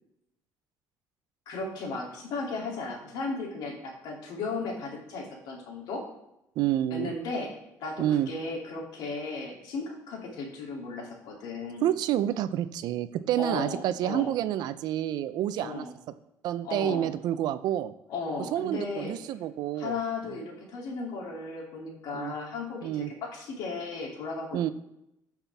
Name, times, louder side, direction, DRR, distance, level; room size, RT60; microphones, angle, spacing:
voice 1, 1.5-6.0 6.9-7.5 7.8-11.9 13.4-14.3 15.6-15.9 16.6-17.1 18.1-19.1 19.8-24.7, left 3 dB, 75° left, -1 dB, 2.7 m, -35 dB
voice 2, 6.6-7.1 8.0-8.3 11.8-15.9 16.4-17.9 18.5-19.9 22.1-22.3 22.8-23.1 24.5-24.7, right 12 dB, 75° right, 13 dB, 0.6 m, -28 dB
14.5 x 5.8 x 3.5 m, 0.84 s
cardioid pair, 100°, 7 cm